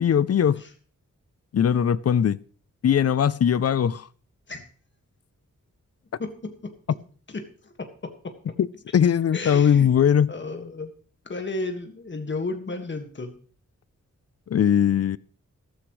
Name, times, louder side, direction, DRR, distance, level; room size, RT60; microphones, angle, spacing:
voice 1, 0.0-0.6 1.5-2.4 2.8-4.1 8.6-8.7 8.9-10.3 14.5-15.2, left 8 dB, 55° left, 0.5 m, -20 dB
voice 2, 6.2-6.7 7.3-8.3 9.3-9.9 10.3-10.9 11.3-13.3, left 3 dB, 35° left, 1.8 m, -33 dB
14.5 x 13.5 x 3.2 m
wide cardioid pair, 165°, 31 cm